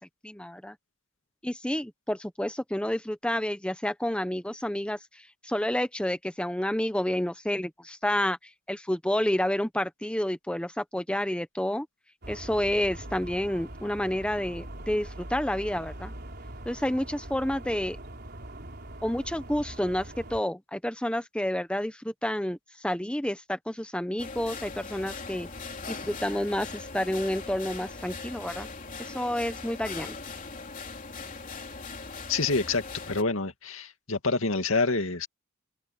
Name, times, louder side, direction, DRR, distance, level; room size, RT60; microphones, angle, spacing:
voice 1, 0.2-0.8 1.4-8.4 8.7-11.9 12.3-16.1 16.6-18.0 19.0-25.5 25.9-28.7 29.0-30.2, left 1 dB, 5° left, 0.9 m, -29 dB
sound 1, 12.2-20.4, right 1 dB, 50° right, 4.9 m, -42 dB
sound 2, 24.2-33.2, left 4 dB, 40° left, 3.5 m, -40 dB
voice 2, 32.3-35.3, left 3 dB, 85° left, 2.3 m, -27 dB
open air
head